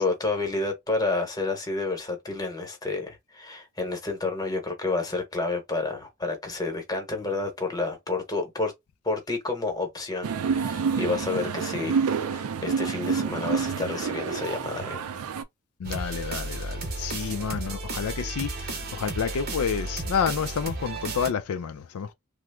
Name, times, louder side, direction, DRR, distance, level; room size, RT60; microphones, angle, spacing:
voice 1, 0.0-8.7 9.0-15.1, left 3 dB, 15° left, 0.9 m, -30 dB
sound 1, 10.2-15.4, right 6 dB, 75° right, 0.4 m, -28 dB
voice 2, 15.8-22.1, left 7 dB, 75° left, 0.4 m, -29 dB
sound 2, 15.8-21.3, right 2 dB, 45° right, 0.7 m, -33 dB
3.0 x 2.0 x 3.3 m
head